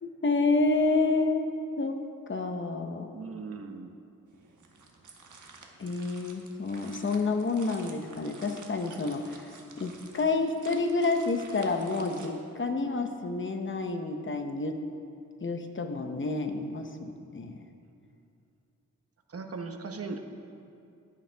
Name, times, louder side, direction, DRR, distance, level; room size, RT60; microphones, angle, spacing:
voice 1, 0.0-2.0 2.3-3.1 5.8-9.5 9.8-14.8 15.4-17.6, left 3 dB, 40° left, 6 dB, 0.8 m, -29 dB
voice 2, 3.1-4.0 19.3-20.2, right 4 dB, 50° right, 5 dB, 0.9 m, -38 dB
sound 1, 4.3-12.3, right 4 dB, 80° right, 1.2 m, -51 dB
14.5 x 10.5 x 3.4 m, 2.5 s
wide cardioid pair, 140°, 30 cm